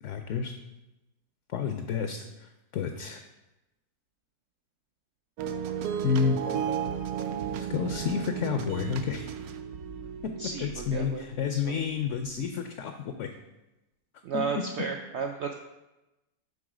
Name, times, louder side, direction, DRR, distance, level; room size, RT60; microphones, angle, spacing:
voice 1, 0.0-0.5 1.5-3.2 6.0-6.4 7.6-9.3 10.2-13.3 14.3-14.6, left 7 dB, 70° left, 6 dB, 0.7 m, -30 dB
sound 1, 5.4-11.5 12.1-12.2, right 8 dB, 70° right, 1.0 m, -34 dB
voice 2, 10.4-11.8 14.2-15.5, right 5 dB, 90° right, 4 dB, 0.6 m, -34 dB
7.1 x 3.9 x 4.9 m, 1.0 s
omnidirectional pair, 1.7 m